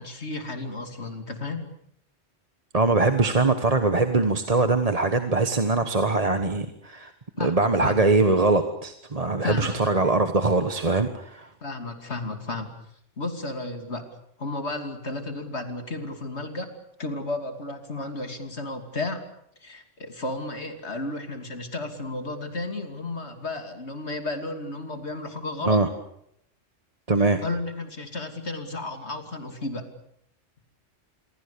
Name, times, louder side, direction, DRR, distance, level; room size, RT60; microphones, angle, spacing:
voice 1, 0.0-1.7 7.4-8.0 9.4-9.8 11.6-12.7 13.2-14.1 14.4-16.7 17.0-19.3 19.6-25.8 27.4-29.9, left 2 dB, 60° left, 7 dB, 3.1 m, -33 dB
voice 2, 2.7-7.1 7.4-11.5 25.7-25.9 27.1-27.4, right 3 dB, 30° right, 8 dB, 1.4 m, -22 dB
27.5 x 23.0 x 6.9 m, 0.73 s
omnidirectional pair, 1.3 m